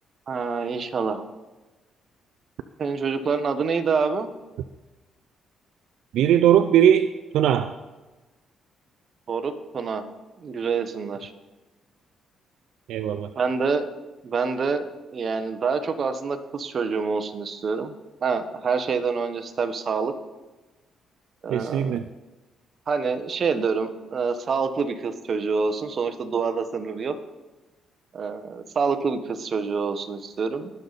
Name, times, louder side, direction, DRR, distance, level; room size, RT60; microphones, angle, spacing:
voice 1, 0.3-1.2 2.8-4.3 9.3-10.0 10.4-11.3 13.3-13.9 14.2-17.9 18.2-20.1 21.4-22.0 22.9-27.1 28.1-30.7, right 5 dB, 50° right, 8 dB, 1.1 m, -26 dB
voice 2, 6.1-7.7 12.9-13.3 21.5-22.1, right 10 dB, 85° right, 10 dB, 0.5 m, -20 dB
19.5 x 6.8 x 4.1 m, 1.2 s
cardioid pair, 90°, 0 cm